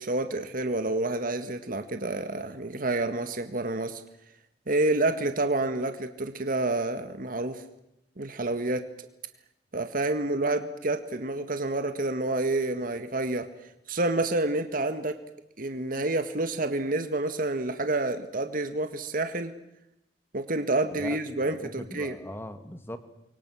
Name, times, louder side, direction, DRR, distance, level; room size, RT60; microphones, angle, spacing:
voice 1, 0.0-4.0 4.7-7.6 8.2-8.8 9.7-13.5 13.9-15.2 15.6-19.5 20.3-22.2, right 2 dB, 55° right, 8 dB, 1.8 m, -28 dB
voice 2, 20.9-23.0, left 1 dB, 15° left, 9 dB, 1.9 m, -40 dB
30.0 x 24.0 x 6.4 m, 0.81 s
head